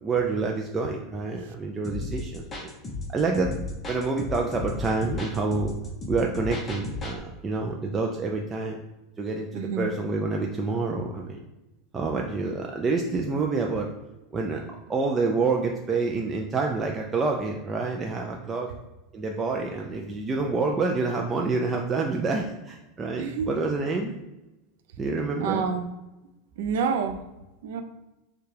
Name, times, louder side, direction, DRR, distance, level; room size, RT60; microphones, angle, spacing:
voice 1, 0.0-2.7 3.1-3.6 3.9-5.8 6.1-8.8 9.2-11.4 11.9-13.9 14.3-14.6 14.9-18.8 19.1-24.1 25.0-25.7, right 3 dB, 20° right, 1 dB, 0.4 m, -27 dB
sound 1, 1.8-7.2, left 2 dB, 20° left, 1.0 m, -34 dB
voice 2, 9.5-9.9 23.2-23.7 25.4-25.8 26.6-27.2 27.6-27.8, right 6 dB, 75° right, 7 dB, 0.5 m, -28 dB
6.7 x 2.3 x 3.3 m, 1.0 s
supercardioid pair, 140°, 0 cm